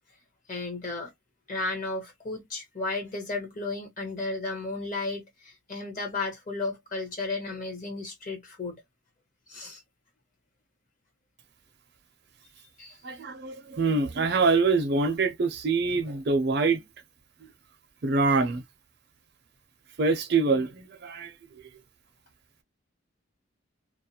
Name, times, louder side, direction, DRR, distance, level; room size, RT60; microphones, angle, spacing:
voice 1, 0.5-1.1 1.5-8.8 9.5-9.8 12.8-13.0, left 3 dB, 40° left, 1.2 m, -34 dB
voice 2, 13.0-16.8 18.0-18.6 20.0-21.6, right 4 dB, 55° right, 0.5 m, -25 dB
2.4 x 2.1 x 2.7 m
head